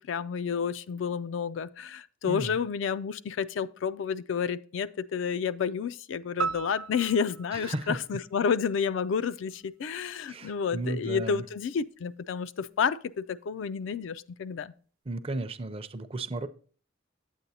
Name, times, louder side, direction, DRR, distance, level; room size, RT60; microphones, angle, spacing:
voice 1, 0.0-14.7, left 6 dB, 65° left, 0.3 m, -30 dB
sound 1, 6.4-8.9, right 5 dB, 90° right, 0.4 m, -36 dB
voice 2, 7.5-8.0 10.3-11.4 15.1-16.5, right 2 dB, 30° right, 0.5 m, -34 dB
9.0 x 8.0 x 2.8 m
head